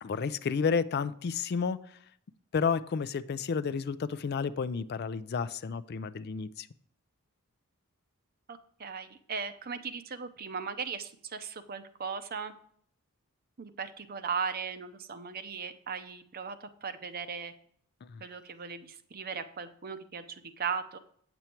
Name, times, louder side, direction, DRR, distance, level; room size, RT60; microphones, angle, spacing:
voice 1, 0.0-1.8 2.5-6.7 18.0-18.2, left 5 dB, 45° left, 15 dB, 0.4 m, -31 dB
voice 2, 8.5-12.5 13.6-17.5 18.2-21.0, right 6 dB, 45° right, 10 dB, 0.7 m, -38 dB
8.9 x 7.0 x 4.4 m, 0.63 s
head